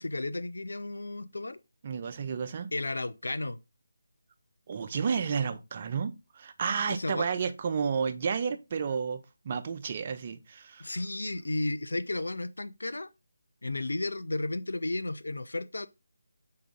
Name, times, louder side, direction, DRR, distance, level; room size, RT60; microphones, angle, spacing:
voice 1, 0.0-1.6 2.7-3.6 6.9-7.3 10.8-13.1 13.6-15.9, left 2 dB, 90° left, 0.4 m, -33 dB
voice 2, 1.8-2.7 4.7-11.0, right 6 dB, 35° right, 0.5 m, -31 dB
3.9 x 3.9 x 3.5 m
figure-of-eight pair, 165°, 0 cm